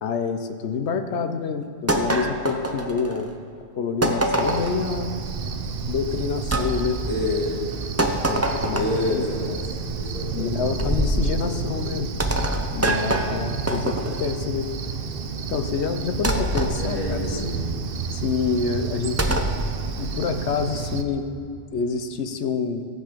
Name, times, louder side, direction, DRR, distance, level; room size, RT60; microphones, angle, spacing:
voice 1, 0.0-3.3 3.8-5.1 5.9-7.0 8.3-9.3 10.3-12.1 12.7-14.7 15.5-17.4 18.1-19.4 20.0-21.3 21.7-22.9, left 5 dB, 70° left, 8 dB, 1.0 m, -27 dB
sound 1, 1.9-3.3 4.0-4.8 6.5-6.7 8.0-9.1 10.8-11.2 12.2-14.3 16.2-16.7 19.2-19.6, right 1 dB, 15° right, 0.6 m, -24 dB
Cricket, 4.4-21.0, right 5 dB, 55° right, 0.8 m, -31 dB
voice 2, 7.0-7.6 8.7-9.6 10.0-10.8 11.3-12.3 13.9-14.1 16.8-17.7, left 2 dB, 30° left, -4 dB, 2.3 m, -29 dB
15.0 x 8.0 x 5.0 m, 2.5 s
omnidirectional pair, 1.2 m